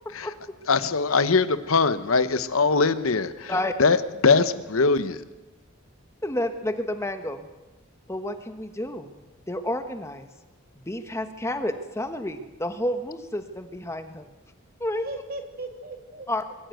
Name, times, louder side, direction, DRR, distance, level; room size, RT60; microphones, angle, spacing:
voice 1, 0.7-3.5 3.8-5.2, left 4 dB, 80° left, 13 dB, 1.0 m, -22 dB
voice 2, 3.0-3.8 14.9-16.5, right 2 dB, 45° right, 4 dB, 2.8 m, -40 dB
voice 3, 6.2-7.5 8.1-9.2 9.5-10.3 10.9-14.3 14.8-15.0 16.3-16.4, left 1 dB, 15° left, 8 dB, 1.2 m, -30 dB
22.0 x 14.0 x 9.2 m, 1.1 s
head